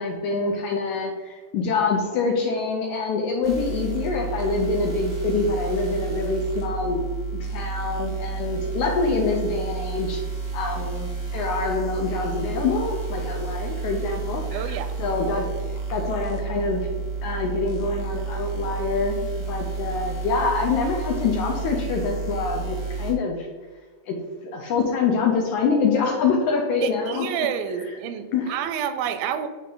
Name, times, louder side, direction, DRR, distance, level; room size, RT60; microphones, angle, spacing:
voice 1, 0.0-7.0 7.3-10.2 10.5-16.9 17.2-19.2 19.5-23.5 24.1-24.2 24.4-27.3 28.3-28.5, left 4 dB, 75° left, 1 dB, 1.8 m, -25 dB
sound 1, 3.4-23.1, right 4 dB, 50° right, 0.7 m, -31 dB
voice 2, 14.5-14.9 26.8-29.5, right 8 dB, 85° right, 10 dB, 2.3 m, -29 dB
9.4 x 3.6 x 3.8 m, 1.4 s
omnidirectional pair, 4.1 m